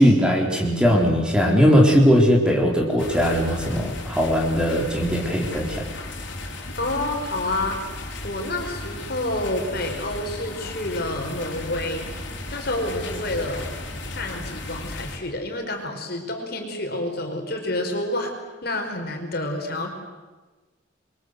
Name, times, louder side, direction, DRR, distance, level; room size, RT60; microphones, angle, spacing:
voice 1, 0.0-5.8, equal, 5° right, -1 dB, 3.8 m, -19 dB
sound 1, 3.0-15.2, left 2 dB, 70° left, 4.5 m, -35 dB
voice 2, 6.8-8.0 8.2-12.0 12.5-13.7 14.1-18.3 18.6-19.9, left 1 dB, 50° left, 3 dB, 4.7 m, -28 dB
27.5 x 23.0 x 8.0 m, 1.2 s
head